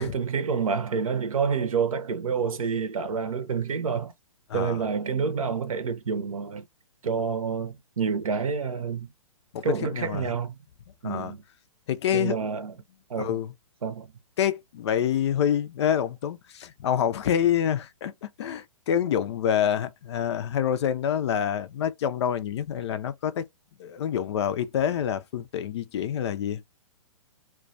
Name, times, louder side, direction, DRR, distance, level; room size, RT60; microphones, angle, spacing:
voice 1, 0.0-4.1 4.5-6.6 7.0-9.1 9.6-10.5 11.0-11.4 12.1-12.7 13.1-13.4 13.8-14.1, right 6 dB, 75° right, 0.7 m, -28 dB
voice 2, 4.5-4.8 9.5-10.3 11.0-11.3 11.9-12.4 13.2-13.5 14.4-23.5 23.8-26.6, left 9 dB, 50° left, 0.4 m, -27 dB
2.2 x 2.2 x 2.5 m
hypercardioid pair, 130°, 18 cm